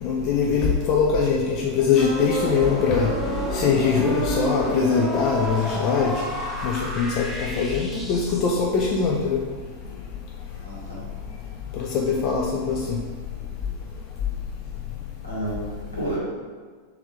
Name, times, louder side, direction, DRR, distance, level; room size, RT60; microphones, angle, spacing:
voice 1, 0.0-3.1 3.5-6.1 6.6-9.4 11.8-13.0, left 5 dB, 40° left, -1 dB, 0.4 m, -22 dB
sound 1, 1.9-8.6, right 1 dB, 5° left, 0.8 m, -30 dB
voice 2, 10.6-11.0 15.2-16.2, right 1 dB, 80° left, -6 dB, 1.2 m, -31 dB
3.5 x 3.1 x 3.1 m, 1.5 s
figure-of-eight pair, 90°, 0 cm